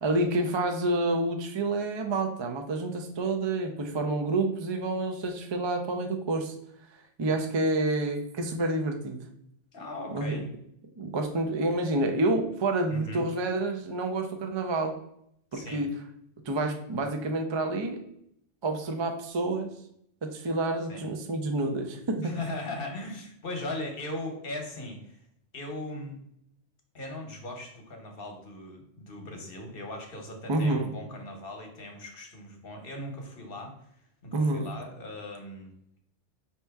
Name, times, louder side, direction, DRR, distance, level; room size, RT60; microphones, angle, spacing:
voice 1, 0.0-6.5 7.2-9.2 10.1-10.4 11.0-14.9 15.5-15.9 16.5-18.0 18.6-19.7 20.2-22.3 30.5-30.9 34.3-34.7, right 2 dB, 40° right, 4 dB, 0.4 m, -28 dB
voice 2, 9.7-10.5 12.9-13.3 15.5-15.8 20.9-21.0 22.2-25.2 25.5-26.2 26.9-35.7, left 1 dB, 55° left, 3 dB, 1.1 m, -39 dB
5.4 x 2.9 x 3.4 m, 0.73 s
omnidirectional pair, 1.2 m